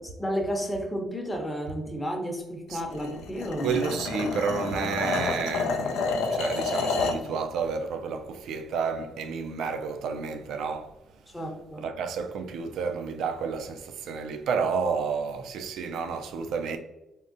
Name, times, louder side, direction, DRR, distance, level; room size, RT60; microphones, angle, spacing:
voice 1, 0.0-3.8 11.3-11.8, equal, 15° left, 0.7 m, -32 dB
sound 1, 2.9-7.3, left 4 dB, 85° left, 0.4 m, -29 dB
voice 2, 3.6-11.0 11.8-16.8, right 5 dB, 80° right, 0.3 m, -30 dB
3.6 x 2.1 x 2.5 m
cardioid pair, 90°, 0 cm